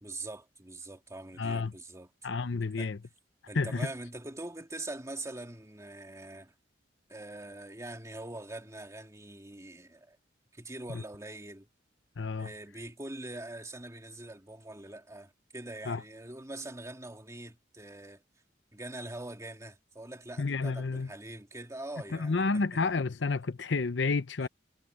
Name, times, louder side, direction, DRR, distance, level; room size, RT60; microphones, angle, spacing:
voice 1, 0.0-2.1 2.8-2.9 3.5-6.5 7.1-10.2 10.5-11.7 12.4-18.2 18.7-22.8 24.4-24.5, right 2 dB, 15° right, 2.4 m, -43 dB
voice 2, 1.4-1.7 2.2-3.0 3.5-3.9 10.9-11.0 12.2-12.5 15.9-16.0 20.4-21.1 22.1-24.5, left 4 dB, 75° left, 0.7 m, -30 dB
head